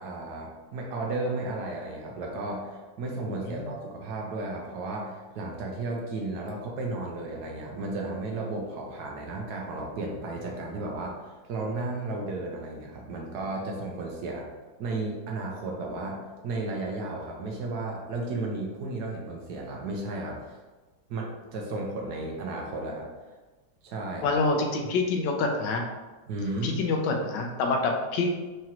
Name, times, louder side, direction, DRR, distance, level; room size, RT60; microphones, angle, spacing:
voice 1, 0.0-11.1 11.5-14.4 14.8-16.2 16.4-20.6 21.1-23.1 23.8-24.4 26.3-26.8, right 2 dB, 70° right, -1 dB, 1.1 m, -34 dB
voice 2, 24.2-25.8 26.6-28.3, left 3 dB, 80° left, 2 dB, 1.3 m, -26 dB
4.8 x 2.9 x 2.9 m, 1.2 s
omnidirectional pair, 2.0 m